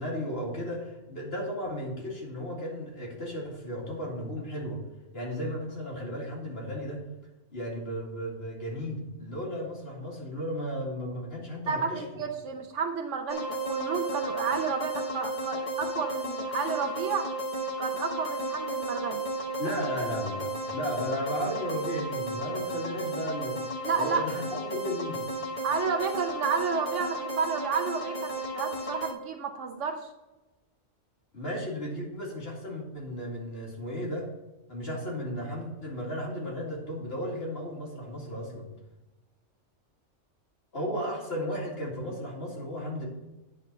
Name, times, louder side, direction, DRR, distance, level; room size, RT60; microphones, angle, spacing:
voice 1, 0.0-4.8 5.1-7.0 7.5-12.0 19.6-23.6 24.0-25.2 31.3-34.3 34.7-38.7 40.7-43.1, equal, 55° left, -3 dB, 2.5 m, -34 dB
voice 2, 11.7-17.3 17.8-19.2 23.8-24.3 25.6-30.1, right 5 dB, 80° right, 3 dB, 1.1 m, -31 dB
sound 1, 13.3-29.1, right 1 dB, 30° left, 1.1 m, -34 dB
9.6 x 4.0 x 6.6 m, 1.0 s
omnidirectional pair, 1.3 m